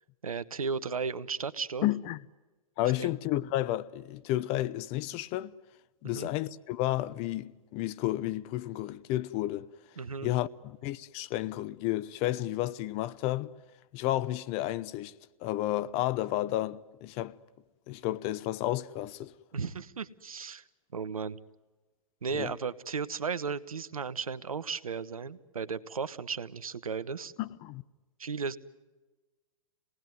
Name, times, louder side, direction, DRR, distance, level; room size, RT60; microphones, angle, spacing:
voice 1, 0.2-1.9 3.0-3.1 6.0-6.3 10.0-10.3 19.5-20.6 20.9-21.4 22.2-27.3 28.2-28.6, right 5 dB, 85° right, 1.1 m, -35 dB
voice 2, 1.8-2.2 2.8-5.5 6.0-9.7 10.2-13.5 13.9-15.1 15.4-17.3 17.9-19.3 22.3-22.5 27.4-27.8, left 15 dB, 35° left, 0.8 m, -31 dB
27.5 x 19.0 x 9.4 m
hypercardioid pair, 120°, 18 cm